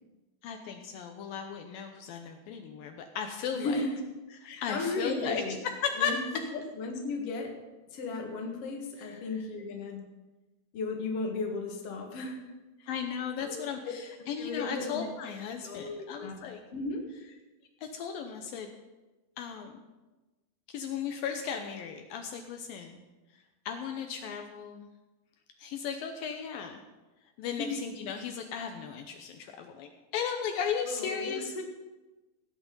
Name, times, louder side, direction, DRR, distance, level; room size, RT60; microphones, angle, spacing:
voice 1, 0.4-3.8 4.4-5.4 5.8-6.1 9.0-9.2 12.9-16.6 17.8-18.7 19.4-19.8 20.7-23.0 23.7-24.9 25.6-26.8 27.4-31.5, left 7 dB, 75° left, 4 dB, 2.5 m, -36 dB
voice 2, 3.5-4.0 4.4-5.6 6.0-6.2 6.8-7.6 7.9-10.0 10.7-12.4 12.8-12.9 13.4-13.9 14.4-15.1 15.6-16.3 16.7-17.0 27.6-27.8 30.9-31.6, left 3 dB, 50° left, 1 dB, 2.4 m, -35 dB
17.0 x 8.7 x 5.5 m, 1.1 s
omnidirectional pair, 4.3 m